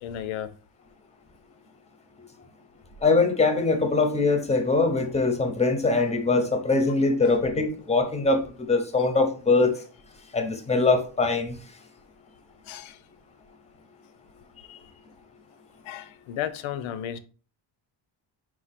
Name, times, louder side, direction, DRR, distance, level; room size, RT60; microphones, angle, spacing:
voice 1, 0.0-0.5 7.3-7.4 12.7-13.0 15.9-17.2, left 10 dB, 80° left, 0.6 m, -33 dB
voice 2, 3.0-9.7 10.3-11.6 14.7-14.8, left 3 dB, 15° left, 0.7 m, -22 dB
4.6 x 2.3 x 4.1 m
cardioid pair, 120°, 47 cm